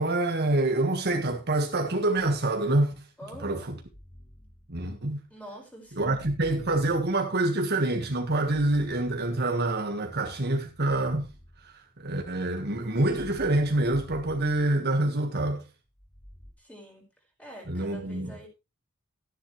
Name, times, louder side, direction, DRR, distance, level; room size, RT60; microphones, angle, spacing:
voice 1, 0.0-2.9 3.4-3.8 4.7-5.2 6.0-11.3 11.6-15.7 17.7-18.4, right 2 dB, 50° right, 1.6 m, -26 dB
sound 1, 2.1-2.8 3.6-5.3 5.9-7.7 8.2-9.8 10.6-12.2 12.8-15.3 15.9-16.5, equal, 30° left, 4.0 m, -50 dB
voice 2, 3.2-3.8 5.3-6.3 16.6-17.0 17.4-18.5, equal, 5° left, 4.7 m, -46 dB
13.5 x 10.5 x 3.2 m
head